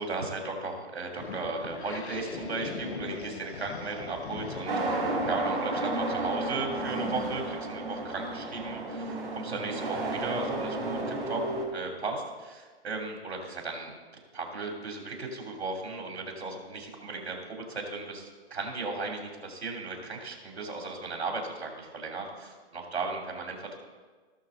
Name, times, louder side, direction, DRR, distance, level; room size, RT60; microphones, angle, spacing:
voice 1, 0.0-11.4 11.7-14.0 14.3-23.8, right 3 dB, 75° right, 1 dB, 2.8 m, -36 dB
sound 1, 1.2-6.5, left 5 dB, 85° left, 1.1 m, -41 dB
sound 2, 4.7-11.6, right 2 dB, 50° right, 3.8 m, -32 dB
17.5 x 6.5 x 3.8 m, 1.4 s
hypercardioid pair, 135°, 32 cm